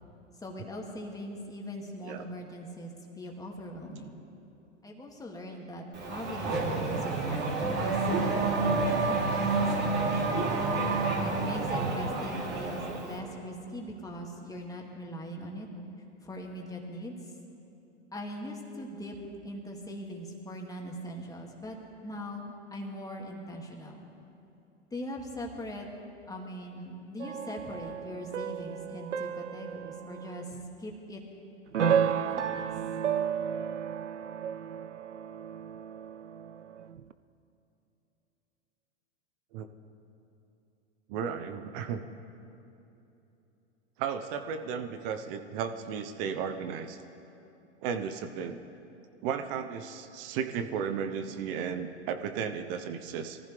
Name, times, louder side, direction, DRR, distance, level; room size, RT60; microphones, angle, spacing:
voice 1, 0.4-4.2 4.8-10.5 11.2-15.7 16.2-17.1 18.1-19.2 19.4-21.8 22.0-24.0 24.9-25.9 26.3-30.5 30.8-31.2 31.8-32.7, equal, 10° left, 0 dB, 2.3 m, -41 dB
Race car auto racing / Accelerating revving vroom, 5.9-13.2, right 3 dB, 30° right, 2.9 m, -29 dB
sound 1, 27.2-30.7 31.7-37.1, right 8 dB, 85° right, 0.6 m, -33 dB
voice 2, 41.1-42.0 44.0-47.0 47.8-48.6 49.2-53.4, right 7 dB, 50° right, 7 dB, 1.1 m, -34 dB
23.5 x 15.0 x 3.4 m, 2.9 s
hypercardioid pair, 95°, 35 cm